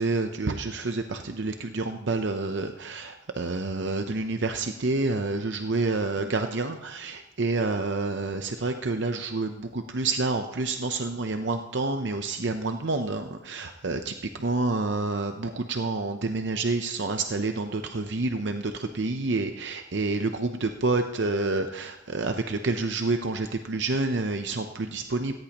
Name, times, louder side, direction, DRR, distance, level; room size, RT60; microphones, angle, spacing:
voice 1, 0.0-25.3, right 3 dB, 65° right, 6 dB, 0.7 m, -28 dB
17.0 x 15.5 x 3.0 m, 0.91 s
head